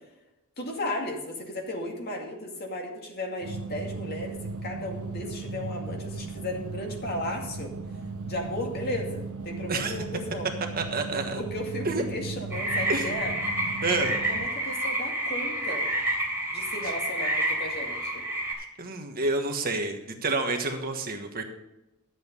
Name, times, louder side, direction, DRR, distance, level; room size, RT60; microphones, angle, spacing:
voice 1, 0.6-7.7 8.3-10.5 11.4-13.3 14.3-15.9 16.5-18.2, left 1 dB, 45° left, 1 dB, 2.3 m, -35 dB
sound 1, 3.4-14.5, right 3 dB, 75° right, 1.1 m, -37 dB
voice 2, 10.8-11.4 11.8-12.0 12.9-13.1 13.8-14.2 18.6-21.4, right 3 dB, 45° right, 4 dB, 1.3 m, -29 dB
sound 2, 12.5-18.5, right 1 dB, 10° right, 3.4 m, -29 dB
11.5 x 8.0 x 5.4 m, 0.96 s
head